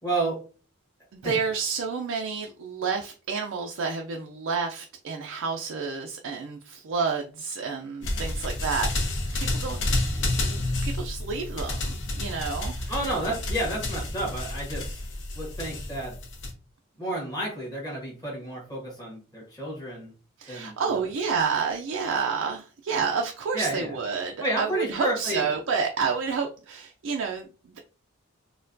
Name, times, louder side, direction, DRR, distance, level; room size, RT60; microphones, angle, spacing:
voice 1, 0.0-0.4 1.2-1.3 12.9-15.0 15.3-16.1 17.0-20.1 20.5-21.0 23.5-24.0 24.4-25.5, right 1 dB, 20° left, -4 dB, 1.3 m, -31 dB
voice 2, 1.1-8.9 9.3-9.8 10.4-12.9 20.4-27.8, right 5 dB, 70° right, 2 dB, 0.4 m, -30 dB
sound 1, 8.0-16.5, left 2 dB, 60° left, 0.8 m, -30 dB
4.2 x 2.2 x 2.6 m, 0.37 s
head